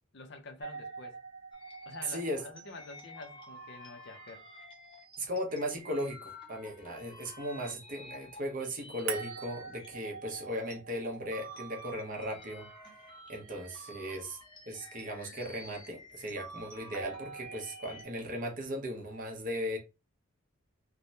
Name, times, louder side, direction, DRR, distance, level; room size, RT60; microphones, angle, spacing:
voice 1, 0.1-1.2 1.9-4.5 14.1-14.2 15.3-15.4, left 3 dB, 55° left, 0.5 m, -48 dB
sound 1, 0.6-5.6 9.1-13.2 16.9-18.1, right 6 dB, 80° right, 0.6 m, -46 dB
sound 2, 1.5-10.8 11.1-18.0, equal, 20° left, 0.7 m, -51 dB
voice 2, 2.1-2.4 5.2-12.7 13.3-14.4 14.7-19.8, equal, 40° right, 0.8 m, -37 dB
3.3 x 2.0 x 2.7 m
head